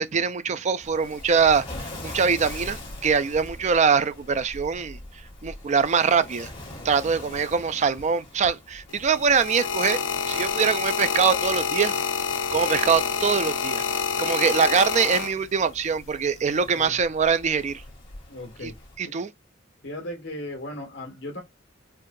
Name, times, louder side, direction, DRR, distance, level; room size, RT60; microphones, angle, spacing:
voice 1, 0.0-5.0 5.4-6.5 6.8-10.0 10.3-11.9 12.5-13.8 14.2-17.8 18.6-18.7 19.0-19.3, right 6 dB, 35° right, 0.4 m, -23 dB
Waves surf, 0.8-19.0, left 1 dB, 25° left, 1.8 m, -43 dB
voice 2, 6.8-7.3 16.6-17.0 17.9-18.0 18.3-18.7 19.1-19.2 19.8-21.4, left 1 dB, 65° left, 1.4 m, -38 dB
sound 1, 8.9-15.7 16.6-16.9, left 6 dB, 80° left, 0.6 m, -27 dB
4.5 x 2.4 x 2.5 m
head